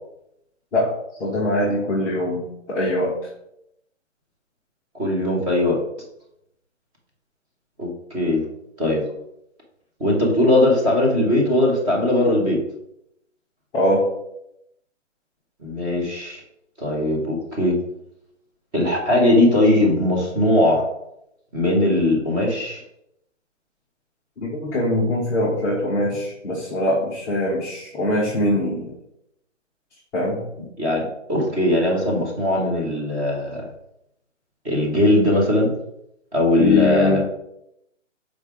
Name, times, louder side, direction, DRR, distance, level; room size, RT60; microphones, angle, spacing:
voice 1, 1.2-3.1 13.7-14.1 24.4-28.9 30.1-30.4 36.6-37.2, left 1 dB, 5° left, -11 dB, 0.8 m, -22 dB
voice 2, 4.9-5.8 7.8-8.4 8.8-9.0 10.0-12.6 15.6-16.4 16.8-17.8 18.7-20.8 21.5-22.8 30.8-33.7 34.6-35.7 36.3-37.2, left 1 dB, 10° right, -2 dB, 1.1 m, -19 dB
6.8 x 4.9 x 3.6 m, 0.80 s
hypercardioid pair, 160°, 38 cm